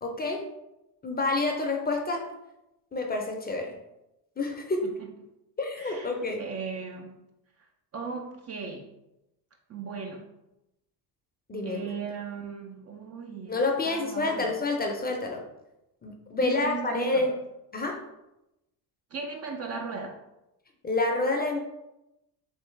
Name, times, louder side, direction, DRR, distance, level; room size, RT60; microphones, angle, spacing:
voice 1, 0.0-0.5 1.0-2.3 2.9-3.8 4.4-4.9 5.6-6.4 11.5-11.8 13.5-15.4 16.0-17.3 17.7-18.0 20.8-21.6, left 3 dB, 20° left, 2 dB, 0.5 m, -28 dB
voice 2, 5.8-6.1 6.4-7.2 7.9-8.9 9.7-10.3 11.6-13.6 13.9-14.6 16.4-17.3 19.1-20.2, right 5 dB, 35° right, 3 dB, 0.4 m, -37 dB
3.2 x 3.2 x 3.1 m, 0.91 s
supercardioid pair, 85°, 47 cm